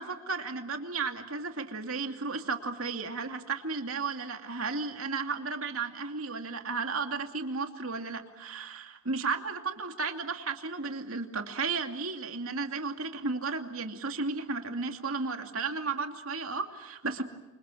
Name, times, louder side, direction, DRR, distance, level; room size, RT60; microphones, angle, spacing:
voice 1, 0.0-17.2, right 4 dB, 90° right, 5 dB, 2.7 m, -34 dB
28.5 x 27.0 x 6.4 m, 1.0 s
head